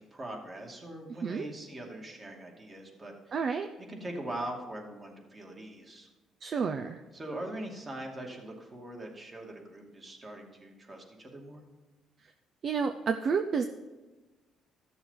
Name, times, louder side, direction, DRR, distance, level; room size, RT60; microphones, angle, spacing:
voice 1, 0.0-3.4 3.9-6.1 7.1-11.6, right 1 dB, 30° right, 1 dB, 2.5 m, -42 dB
voice 2, 3.3-3.7 6.4-7.0 12.6-13.6, right 5 dB, 50° right, 6 dB, 0.6 m, -30 dB
13.5 x 6.9 x 5.8 m, 1.2 s
cardioid pair, 95°, 0 cm